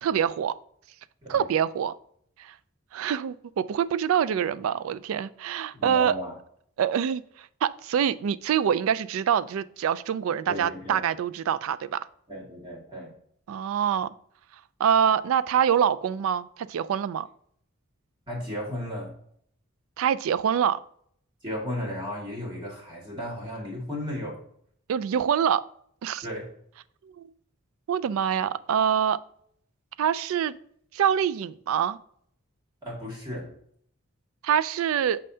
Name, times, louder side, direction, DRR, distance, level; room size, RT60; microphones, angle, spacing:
voice 1, 0.0-0.5 1.3-1.9 2.4-2.5 2.9-6.1 6.8-12.0 13.5-14.1 14.8-17.3 20.0-20.8 24.9-25.6 26.0-26.2 27.0-27.3 27.9-29.2 30.0-30.5 30.9-32.0 34.4-35.2, right 8 dB, 80° right, 0.3 m, -25 dB
voice 2, 5.7-6.4 10.5-11.0 12.3-13.1 18.3-19.1 21.4-24.4 26.2-26.5 32.8-33.5, equal, 20° right, 1.9 m, -34 dB
6.4 x 5.4 x 2.7 m
head